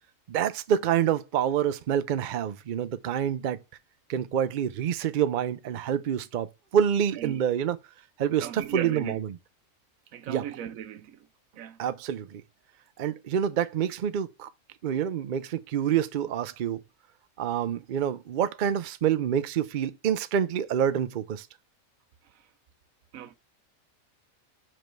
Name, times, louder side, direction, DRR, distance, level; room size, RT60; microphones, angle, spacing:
voice 1, 0.3-3.6 4.1-6.5 6.7-7.8 8.2-9.3 10.3-10.4 11.8-12.4 13.0-14.5 14.8-16.8 17.4-21.5, right 9 dB, 60° right, 0.5 m, -27 dB
voice 2, 8.4-9.2 10.1-11.3 11.6-11.8 23.1-23.3, right 10 dB, 80° right, 1.1 m, -37 dB
5.2 x 4.3 x 5.9 m
omnidirectional pair, 1.4 m